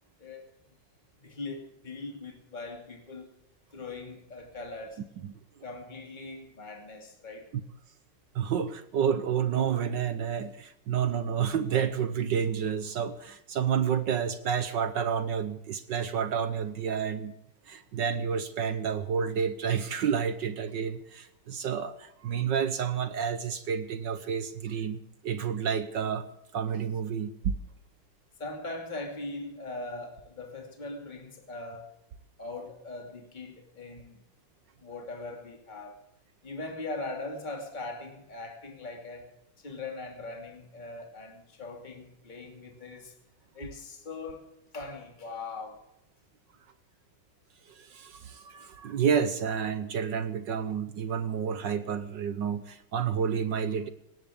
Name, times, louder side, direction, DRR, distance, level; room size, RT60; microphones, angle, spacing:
voice 1, 1.2-3.3 3.7-5.0 5.6-7.5 28.4-31.9 32.4-34.2 34.8-36.0 36.4-39.3 39.6-43.2 43.5-44.5 44.7-45.8, left 3 dB, 20° left, 2.7 m, -40 dB
voice 2, 8.3-17.3 17.7-26.2 26.5-27.5 47.7-53.9, right 7 dB, 65° right, 1.5 m, -30 dB
18.5 x 17.5 x 3.6 m
omnidirectional pair, 2.3 m